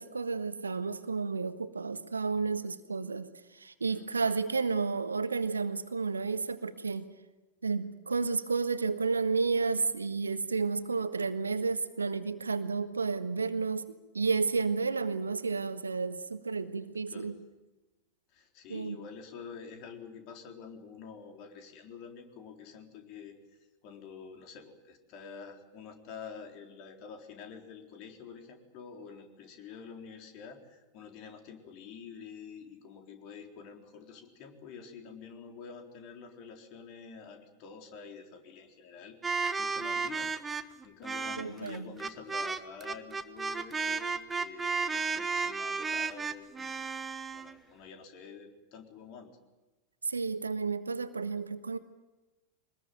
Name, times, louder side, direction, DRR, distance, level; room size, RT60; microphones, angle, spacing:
voice 1, 0.0-7.1 7.6-13.9 14.1-17.3 18.7-19.0 41.4-42.0 50.0-51.8, right 4 dB, 75° right, 11 dB, 1.4 m, -31 dB
voice 2, 3.8-4.3 17.1-17.3 18.3-23.4 23.8-40.3 40.6-47.0 47.3-49.3, left 6 dB, 40° left, 3 dB, 4.0 m, -48 dB
sound 1, 39.2-47.5, right 4 dB, 15° right, 1.3 m, -33 dB
24.0 x 20.5 x 9.2 m, 1.1 s
figure-of-eight pair, 90°, 0 cm